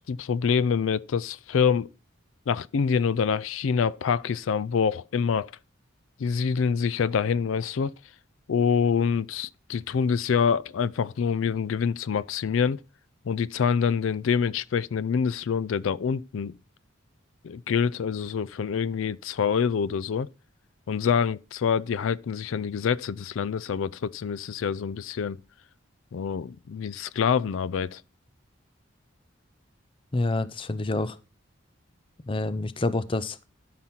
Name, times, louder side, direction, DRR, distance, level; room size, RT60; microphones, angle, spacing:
voice 1, 0.0-1.9 2.5-5.5 6.2-7.9 8.5-12.8 13.3-16.6 17.4-20.3 20.9-25.4 26.1-28.0, left 6 dB, 80° left, 0.4 m, -26 dB
voice 2, 30.1-31.2 32.3-33.4, left 2 dB, 25° left, 0.5 m, -27 dB
12.5 x 5.9 x 4.3 m
head